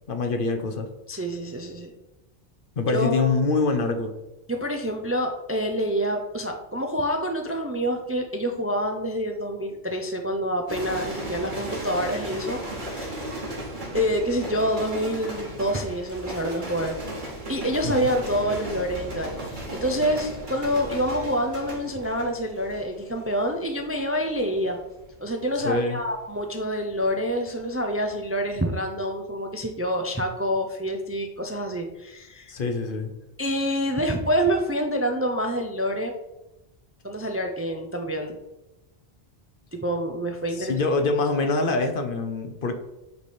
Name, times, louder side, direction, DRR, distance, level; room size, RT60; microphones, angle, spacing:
voice 1, 0.1-0.9 2.8-4.1 17.8-17.9 25.6-26.0 32.5-33.1 40.5-42.7, left 3 dB, 60° left, 6 dB, 1.0 m, -25 dB
voice 2, 1.1-1.9 2.9-3.5 4.5-12.6 12.9-13.1 13.9-16.9 17.5-19.4 19.7-24.8 25.2-32.5 33.4-36.1 37.0-38.4 39.7-40.8, equal, 20° right, 4 dB, 0.4 m, -27 dB
sound 1, 10.7-27.9 28.2-28.6, right 1 dB, 50° right, 1.5 m, -36 dB
8.3 x 3.3 x 4.2 m, 0.96 s
omnidirectional pair, 1.0 m